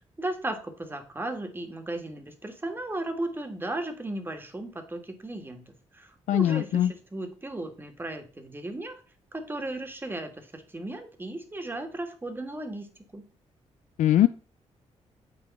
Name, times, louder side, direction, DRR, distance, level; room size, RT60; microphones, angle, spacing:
voice 1, 0.2-5.6 5.9-9.0 9.3-13.3, right 1 dB, 15° right, 6 dB, 1.4 m, -35 dB
voice 2, 6.3-6.9 14.0-14.3, left 12 dB, 90° left, 11 dB, 0.4 m, -21 dB
8.4 x 4.7 x 4.1 m, 0.39 s
cardioid pair, 100°, 12 cm